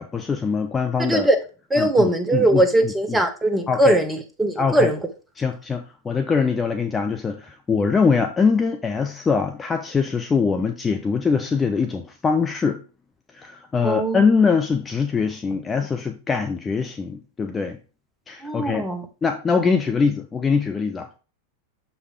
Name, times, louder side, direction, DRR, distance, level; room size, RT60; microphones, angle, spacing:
voice 1, 0.0-1.3 1.8-3.2 3.7-4.0 4.6-4.9 5.4-12.8 13.3-17.8 18.3-18.9 19.2-21.2, left 5 dB, 15° left, 0.6 m, -23 dB
voice 2, 1.7-5.0 13.8-14.2 18.4-19.1, right 1 dB, 10° right, 1.0 m, -20 dB
6.7 x 4.7 x 3.6 m
figure-of-eight pair, 90°, 0 cm